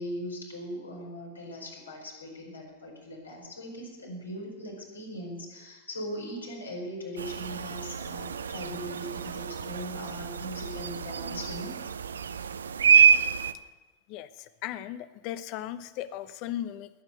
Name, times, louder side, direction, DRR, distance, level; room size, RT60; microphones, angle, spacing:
voice 1, 0.0-12.0, equal, 80° left, -1 dB, 4.8 m, -39 dB
sound 1, 7.2-13.5, right 7 dB, 70° right, 0.5 m, -26 dB
voice 2, 14.1-16.9, left 12 dB, 45° left, 14 dB, 0.9 m, -37 dB
20.5 x 9.2 x 6.8 m, 1.2 s
figure-of-eight pair, 90°, 0 cm